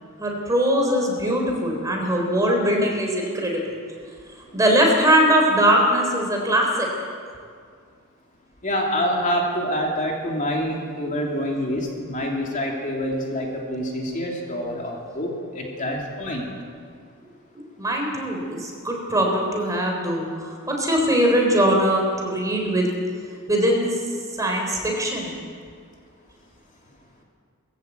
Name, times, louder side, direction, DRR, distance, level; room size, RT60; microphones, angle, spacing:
voice 1, 0.2-3.8 4.5-6.9 17.5-22.9 23.5-23.9 24.4-25.3, equal, 15° right, 0 dB, 3.7 m, -21 dB
voice 2, 8.6-16.5, equal, 35° left, -1 dB, 2.9 m, -26 dB
20.5 x 16.0 x 8.1 m, 2.1 s
head